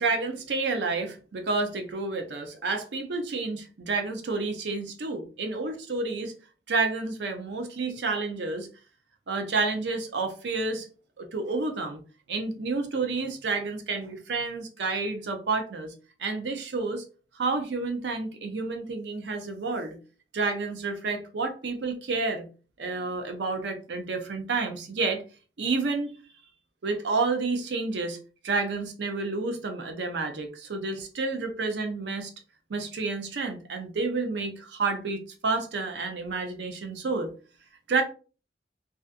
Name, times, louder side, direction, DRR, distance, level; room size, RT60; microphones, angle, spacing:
voice 1, 0.0-6.3 6.7-8.7 9.3-10.9 11.2-12.0 12.3-15.9 16.2-17.0 17.4-20.0 20.3-22.4 22.8-25.2 25.6-26.1 26.8-28.2 28.4-32.3 32.7-37.3 37.9-38.0, right 3 dB, 75° right, 5 dB, 0.5 m, -30 dB
2.5 x 2.4 x 2.3 m, 0.36 s
head